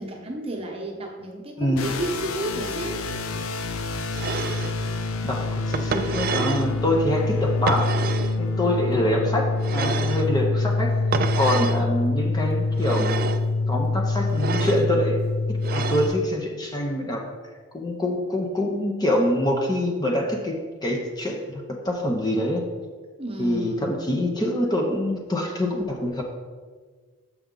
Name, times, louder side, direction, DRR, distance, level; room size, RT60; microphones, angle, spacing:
voice 1, 0.0-3.0 8.6-9.2 11.6-11.8 23.2-24.0, right 1 dB, 25° right, 0 dB, 1.0 m, -33 dB
sound 1, 1.8-16.1, left 3 dB, 90° left, 0.6 m, -26 dB
sound 2, 4.1-4.7 5.7-6.7 7.7-8.4 9.6-10.3 11.1-11.8 12.7-13.4 14.3-14.9 15.6-16.2, right 5 dB, 45° right, 0.3 m, -28 dB
voice 2, 5.2-7.9 8.4-10.9 11.3-13.2 13.7-15.2 15.5-17.3 17.7-22.6 23.4-26.2, left 1 dB, 20° left, 0 dB, 0.6 m, -25 dB
6.7 x 6.0 x 3.8 m, 1.5 s
head